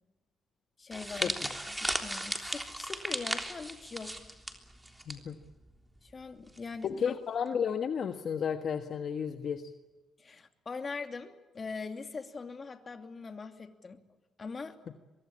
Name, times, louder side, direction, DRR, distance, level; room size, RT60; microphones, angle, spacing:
voice 1, 0.8-1.4 1.8-4.2 6.0-7.2 10.2-14.0 14.4-14.8, left 4 dB, 35° left, 6 dB, 2.8 m, -42 dB
sound 1, 0.9-5.2 5.4-5.7 6.6-6.8, right 1 dB, 5° right, 3.5 m, -36 dB
voice 2, 6.8-9.7, left 7 dB, 55° left, 7 dB, 1.4 m, -32 dB
24.0 x 23.0 x 8.7 m, 1.2 s
cardioid pair, 90°, 0 cm